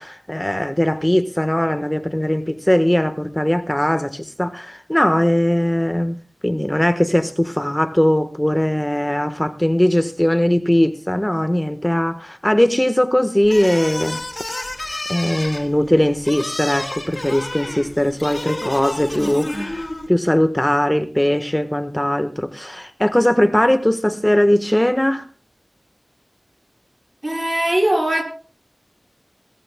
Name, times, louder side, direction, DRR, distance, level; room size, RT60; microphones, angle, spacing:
voice 1, 0.0-14.2 15.1-25.3, left 1 dB, 15° left, 1.2 m, -19 dB
sound 1, 13.4-20.1, left 1 dB, 40° left, 6.1 m, -30 dB
voice 2, 19.1-19.8 27.2-28.2, right 1 dB, 40° right, 5.6 m, -22 dB
22.0 x 18.5 x 2.2 m
wide cardioid pair, 55°, 0 cm